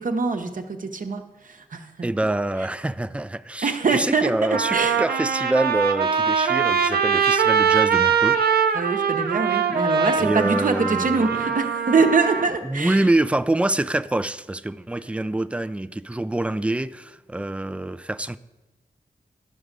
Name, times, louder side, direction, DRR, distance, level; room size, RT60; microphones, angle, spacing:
voice 1, 0.0-2.1 3.6-5.0 8.7-13.1, right 4 dB, 60° right, 0.9 m, -24 dB
voice 2, 2.0-8.4 9.5-9.8 10.2-11.4 12.6-18.4, right 1 dB, 10° right, 0.3 m, -25 dB
Trumpet, 3.8-3.9 4.5-12.5, right 7 dB, 85° right, 0.6 m, -22 dB
10.5 x 5.0 x 6.6 m
cardioid pair, 60°, 16 cm